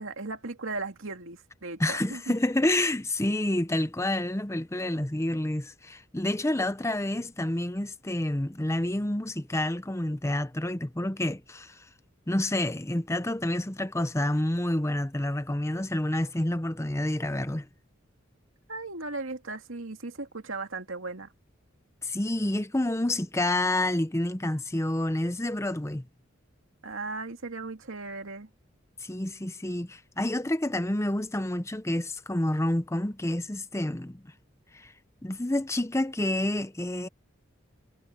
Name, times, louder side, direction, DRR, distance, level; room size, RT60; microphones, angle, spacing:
voice 1, 0.0-2.2 18.7-21.3 26.8-28.5, right 3 dB, 85° right, 2.4 m, -37 dB
voice 2, 1.8-11.8 12.3-17.7 22.0-26.1 29.0-34.2 34.7-34.9 35.2-37.1, left 1 dB, 15° left, 0.8 m, -28 dB
head